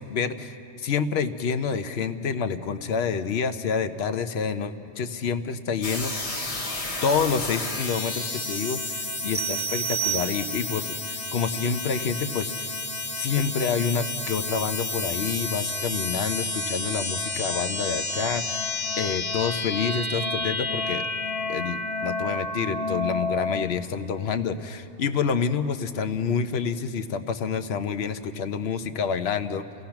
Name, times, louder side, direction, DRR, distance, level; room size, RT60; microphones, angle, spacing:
voice 1, 0.0-6.4 7.0-12.8 13.2-18.6 19.0-21.0 21.5-29.6, left 6 dB, 65° left, 10 dB, 1.0 m, -28 dB
sound 1, 5.8-23.7, left 2 dB, 30° left, 1.4 m, -30 dB
sound 2, 9.3-10.9, right 13 dB, 45° right, 0.9 m, -30 dB
29.5 x 17.0 x 5.9 m, 2.7 s
omnidirectional pair, 1.2 m